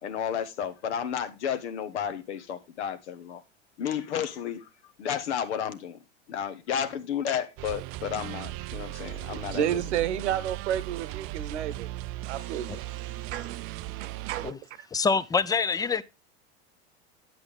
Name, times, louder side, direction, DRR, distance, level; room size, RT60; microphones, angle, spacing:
voice 1, 0.0-3.4 3.8-4.7 5.0-6.0 6.3-9.8, left 8 dB, 80° left, 1.2 m, -32 dB
sound 1, 7.6-14.5, right 18 dB, 45° right, 0.4 m, -37 dB
voice 2, 9.0-11.9 12.3-12.7 13.3-13.5 14.0-14.6, right 10 dB, 80° right, 1.0 m, -31 dB
voice 3, 14.9-16.0, left 5 dB, 10° left, 0.4 m, -25 dB
9.2 x 7.9 x 3.5 m
hypercardioid pair, 95°, 34 cm